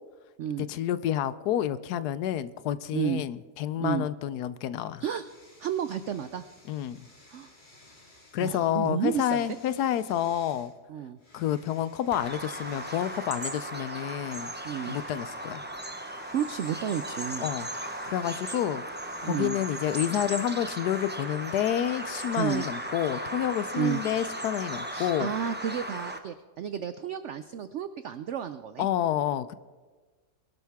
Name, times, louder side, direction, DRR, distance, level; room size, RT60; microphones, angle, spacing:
voice 1, 0.6-5.0 6.7-7.1 8.3-10.7 11.3-14.5 14.9-15.6 17.4-18.8 19.2-25.3 28.8-29.5, left 11 dB, 75° left, 15 dB, 1.1 m, -29 dB
voice 2, 2.9-3.2 3.8-4.1 5.0-5.2 5.6-6.4 7.3-7.5 8.4-9.5 10.9-11.2 14.6-15.0 16.3-17.5 19.2-19.6 22.4-22.7 23.8-24.0 24.9-28.9, right 9 dB, 80° right, 11 dB, 0.6 m, -31 dB
sound 1, 5.2-8.5 9.1-10.7 11.2-13.8 14.1-24.2, left 1 dB, 30° left, 2.1 m, -56 dB
Bird vocalization bird call bird song, 12.1-26.2, right 1 dB, 10° right, 0.5 m, -37 dB
22.0 x 12.0 x 3.5 m, 1.4 s
omnidirectional pair, 1.8 m